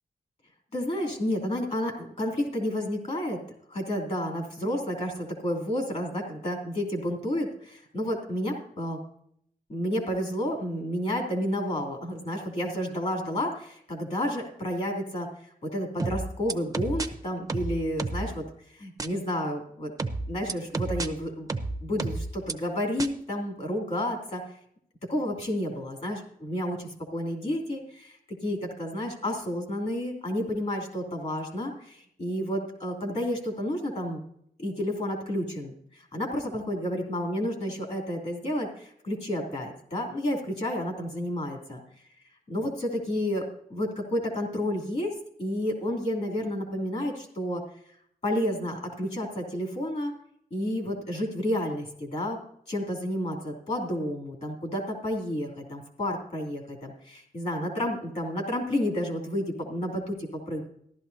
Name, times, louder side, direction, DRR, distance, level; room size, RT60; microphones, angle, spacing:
voice 1, 0.7-3.4 3.7-9.0 9.7-18.4 18.7-19.9 20.3-21.5 21.8-24.5 25.1-28.2 28.4-34.2 34.6-41.8 42.5-45.1 45.4-47.6 48.2-50.1 50.5-52.4 52.7-60.7, equal, 45° left, 1 dB, 2.9 m, -31 dB
sound 1, 16.0-17.1 17.5-18.3 19.0-19.1 20.0-21.1 21.5-22.5 23.0-23.1, right 3 dB, 20° right, 0.7 m, -30 dB
14.5 x 12.0 x 2.7 m, 0.68 s
wide cardioid pair, 155°, 16 cm